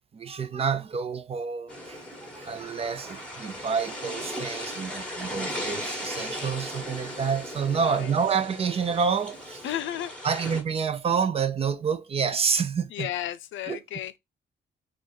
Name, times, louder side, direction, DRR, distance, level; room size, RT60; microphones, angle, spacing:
voice 1, 0.1-2.0 2.3-9.7 10.2-13.1 13.6-13.8, right 6 dB, 30° right, 0.5 m, -28 dB
sound 1, 1.7-10.6, equal, 5° left, 1.1 m, -37 dB
voice 2, 9.6-10.1 12.9-14.2, left 12 dB, 90° left, 0.5 m, -33 dB
3.8 x 2.5 x 4.5 m
wide cardioid pair, 175°, 19 cm